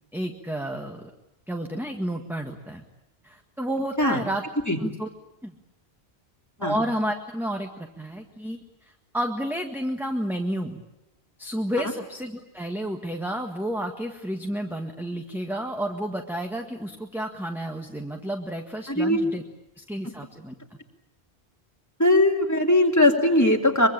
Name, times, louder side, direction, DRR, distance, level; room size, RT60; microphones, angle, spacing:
voice 1, 0.1-1.0 1.5-2.8 3.2-4.4 4.8-5.1 5.4-5.5 6.6-8.6 9.1-10.8 11.4-19.4 19.8-20.5, equal, ahead, 3 dB, 1.7 m, -31 dB
voice 2, 18.9-19.2 20.0-20.1 22.0-23.9, left 1 dB, 15° left, 1 dB, 3.2 m, -20 dB
24.5 x 23.5 x 8.9 m, 0.90 s
omnidirectional pair, 1.1 m